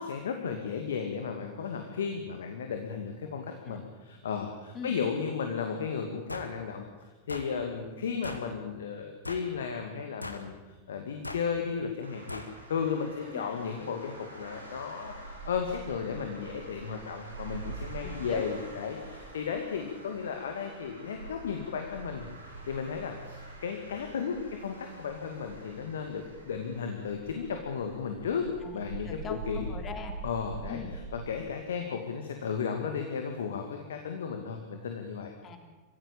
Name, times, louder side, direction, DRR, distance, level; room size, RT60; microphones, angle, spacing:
voice 1, 0.0-12.4 12.7-22.3 22.7-29.7 30.2-35.3, left 6 dB, 65° left, 4 dB, 2.4 m, -34 dB
sound 1, 6.3-6.5 7.3-7.5 8.2-8.5 9.3-9.5 10.2-10.5 11.2-11.5 12.3-12.5, left 2 dB, 85° left, 1.8 m, -40 dB
sound 2, 12.0-31.4, right 3 dB, 80° right, 7.6 m, -45 dB
voice 2, 18.0-18.4 28.6-28.8 29.1-30.1 30.7-30.9 35.4-35.6, left 6 dB, 25° left, 5 dB, 3.5 m, -41 dB
25.0 x 16.0 x 8.8 m, 1.2 s
figure-of-eight pair, 90°, 0 cm